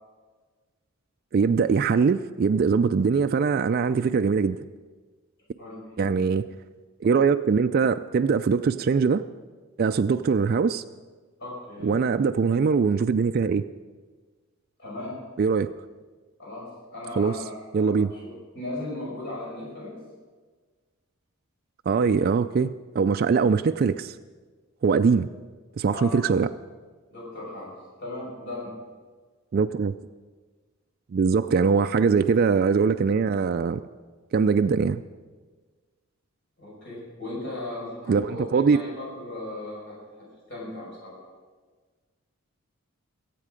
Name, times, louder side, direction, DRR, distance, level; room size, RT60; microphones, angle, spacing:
voice 1, 1.3-4.6 6.0-6.5 7.0-9.2 9.8-10.8 11.8-13.6 15.4-15.7 17.2-17.4 17.7-18.1 21.9-24.2 24.8-25.3 25.8-26.5 29.5-29.9 31.1-33.8 34.3-35.0 38.1-38.8, right 5 dB, 45° right, 8 dB, 0.3 m, -22 dB
voice 2, 11.4-12.0 14.8-15.2 16.4-20.0 25.8-26.2 27.1-28.8 31.5-31.6 36.6-41.2, left 2 dB, 55° left, -5 dB, 5.3 m, -37 dB
24.5 x 8.4 x 5.0 m, 1.4 s
head